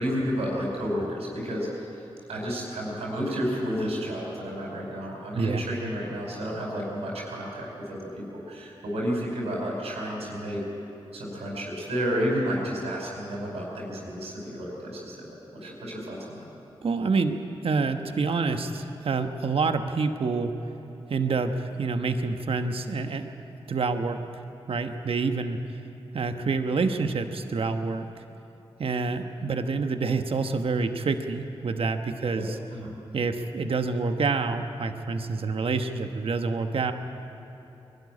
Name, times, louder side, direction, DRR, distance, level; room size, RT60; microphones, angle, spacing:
voice 1, 0.0-1.7 2.3-10.6 11.1-16.4 32.3-32.4 32.7-32.9, equal, 90° right, -3 dB, 5.3 m, -31 dB
voice 2, 16.8-20.5 21.1-23.3 23.7-24.2 24.7-25.6 26.1-28.2 28.8-32.6 33.1-36.9, right 4 dB, 65° right, 7 dB, 1.2 m, -27 dB
21.5 x 12.5 x 9.8 m, 2.9 s
cardioid pair, 45°, 10 cm